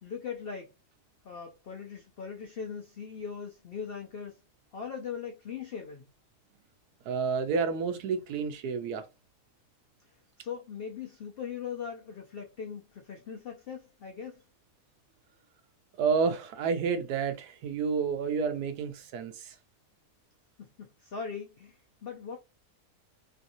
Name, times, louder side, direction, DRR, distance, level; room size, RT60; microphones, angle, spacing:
voice 1, 0.0-0.7 1.2-4.4 4.7-6.0 10.4-14.4 20.6-22.4, left 6 dB, 80° left, 0.5 m, -40 dB
voice 2, 7.1-9.1 16.0-19.6, right 5 dB, 85° right, 1.1 m, -30 dB
3.2 x 2.6 x 2.7 m
omnidirectional pair, 1.7 m